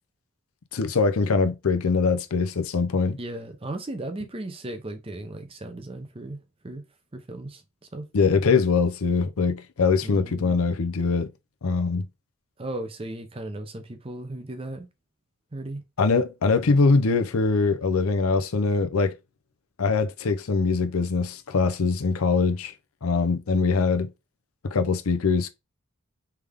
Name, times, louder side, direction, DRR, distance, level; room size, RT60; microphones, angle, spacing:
voice 1, 0.7-3.2 8.1-11.3 11.6-12.0 16.0-19.1 19.8-22.7 23.0-24.1 24.6-25.5, left 4 dB, 80° left, 0.6 m, -22 dB
voice 2, 3.2-6.8 7.1-7.6 7.9-8.0 10.0-10.6 12.6-14.9 15.5-15.8, right 1 dB, 25° right, 0.6 m, -36 dB
3.5 x 3.4 x 3.5 m
head